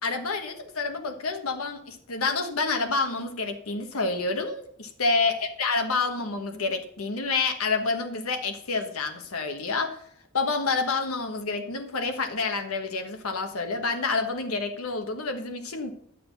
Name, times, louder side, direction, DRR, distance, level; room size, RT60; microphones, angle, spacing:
voice 1, 0.0-10.0 10.3-15.9, left 4 dB, 90° left, 5 dB, 1.3 m, -28 dB
11.0 x 6.9 x 5.4 m, 0.66 s
head